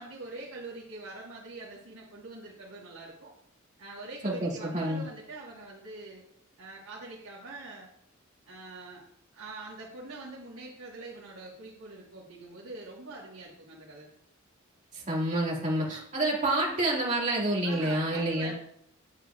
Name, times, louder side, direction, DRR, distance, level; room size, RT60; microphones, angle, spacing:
voice 1, 0.0-3.3 3.8-6.2 6.6-7.9 8.5-9.0 9.3-14.1 17.6-18.5, right 2 dB, 90° right, -5 dB, 1.6 m, -44 dB
voice 2, 4.2-5.0 14.9-18.5, right 1 dB, 35° right, -4 dB, 2.1 m, -28 dB
8.1 x 7.9 x 2.4 m, 0.74 s
head